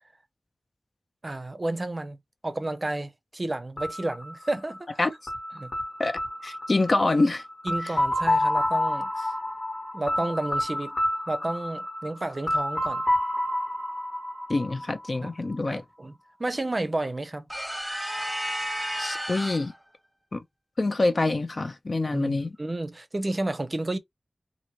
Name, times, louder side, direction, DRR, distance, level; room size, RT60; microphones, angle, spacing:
voice 1, 1.2-2.2 2.4-5.1 5.6-5.7 7.6-9.4 9.9-11.0 11.3-13.0 15.2-15.3 15.7-16.1 16.4-17.5 22.1-24.0, right 2 dB, 40° right, 0.6 m, -31 dB
sound 1, 3.8-15.6, left 1 dB, 70° left, 1.4 m, -29 dB
voice 2, 6.0-7.4 7.8-7.9 14.5-15.8 19.0-19.7 20.3-20.4 20.8-22.6, left 2 dB, 50° left, 0.5 m, -26 dB
sound 2, 17.5-19.8, equal, 10° right, 0.9 m, -32 dB
2.8 x 2.5 x 2.9 m
wide cardioid pair, 75°, 0 cm